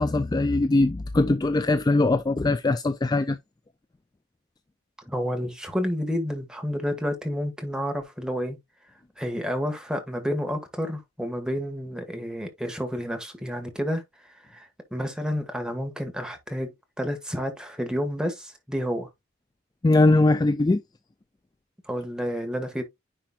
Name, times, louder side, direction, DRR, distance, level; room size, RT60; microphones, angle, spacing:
voice 1, 0.0-3.4 19.8-20.8, left 2 dB, 20° left, 0.3 m, -21 dB
voice 2, 5.0-8.6 9.2-19.1 21.8-22.8, equal, 5° right, 1.6 m, -30 dB
10.0 x 4.4 x 2.3 m
head